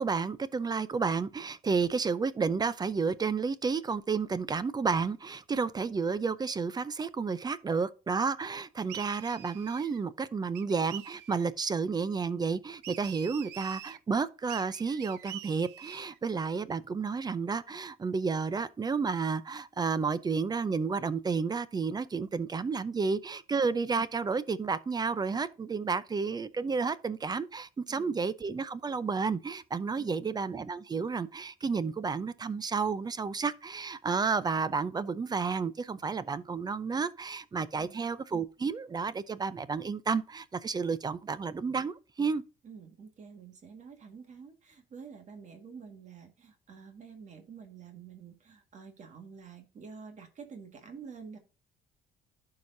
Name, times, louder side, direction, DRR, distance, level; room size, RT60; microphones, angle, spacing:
voice 1, 0.0-42.4, right 5 dB, 25° right, 0.6 m, -31 dB
sound 1, 8.9-10.0 10.5-11.5 12.8-14.0 14.5-16.2, right 12 dB, 80° right, 0.6 m, -46 dB
voice 2, 27.9-28.2 30.0-30.4 37.8-38.1 42.6-51.4, right 6 dB, 45° right, 1.8 m, -49 dB
11.5 x 4.8 x 2.6 m
cardioid pair, 110°, 17 cm